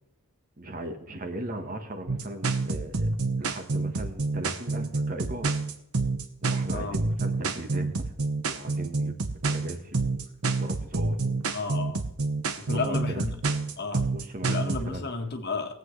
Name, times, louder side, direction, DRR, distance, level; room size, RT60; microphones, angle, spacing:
voice 1, 0.6-3.1 3.4-5.5 6.4-7.9 8.5-9.1 9.5-10.2 10.6-11.5 12.7-13.0 13.9-15.1, right 1 dB, 40° right, 6 dB, 1.3 m, -38 dB
sound 1, 2.1-14.9, right 3 dB, 75° right, 1.1 m, -28 dB
voice 2, 11.5-12.0 12.6-13.4 13.8-14.1 14.5-15.8, left 3 dB, 50° left, 4 dB, 1.4 m, -32 dB
20.0 x 8.1 x 3.2 m, 0.77 s
head